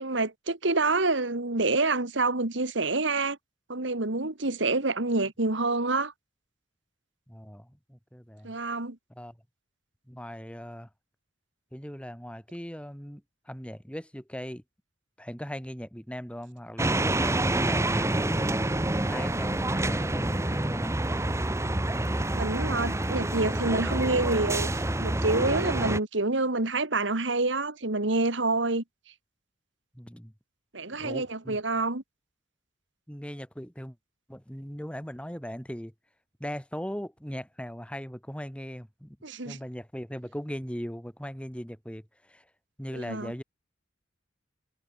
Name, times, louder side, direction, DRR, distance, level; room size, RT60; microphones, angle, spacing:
voice 1, 0.0-3.4 3.7-6.1 8.4-9.0 22.3-28.8 30.7-32.0 39.2-39.6 42.9-43.3, right 3 dB, 70° right, 2.1 m, -27 dB
voice 2, 7.3-8.6 9.2-9.4 10.1-10.9 11.7-14.6 15.2-18.7 19.1-21.0 29.9-30.3 30.9-31.6 33.1-34.0 34.3-35.9 36.4-39.2 39.4-42.4 42.8-43.4, equal, 5° left, 5.5 m, -39 dB
sound 1, 16.8-26.0, right 1 dB, 15° right, 1.0 m, -27 dB
head